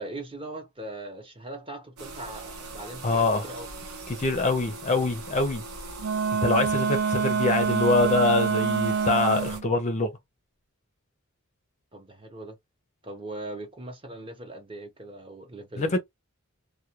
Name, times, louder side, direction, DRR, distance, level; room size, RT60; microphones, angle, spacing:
voice 1, 0.0-3.7 11.9-12.6 13.0-16.0, right 2 dB, 25° right, 0.7 m, -40 dB
sound 1, 2.0-9.6, right 3 dB, 85° right, 0.8 m, -41 dB
voice 2, 3.0-3.5 4.1-5.6 6.4-10.1 15.8-16.0, left 3 dB, 30° left, 0.5 m, -24 dB
Wind instrument woodwind instrument, 6.0-9.6, right 6 dB, 50° right, 0.4 m, -26 dB
2.3 x 2.2 x 2.9 m
head